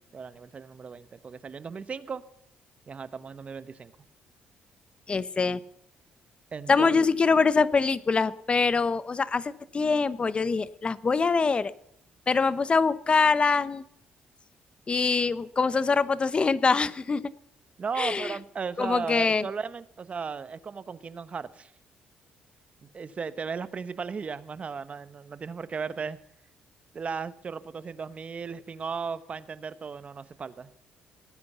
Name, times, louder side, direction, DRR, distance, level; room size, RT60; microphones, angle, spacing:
voice 1, 0.1-2.2 2.9-3.9 6.5-7.0 17.8-21.7 22.8-26.2 26.9-30.7, right 5 dB, 40° right, 15 dB, 1.1 m, -36 dB
voice 2, 5.1-5.6 6.7-11.7 12.3-13.8 14.9-17.2 18.0-18.3 18.8-19.5, left 4 dB, 35° left, 16 dB, 1.0 m, -24 dB
19.0 x 9.7 x 7.0 m, 0.74 s
supercardioid pair, 75°, 3 cm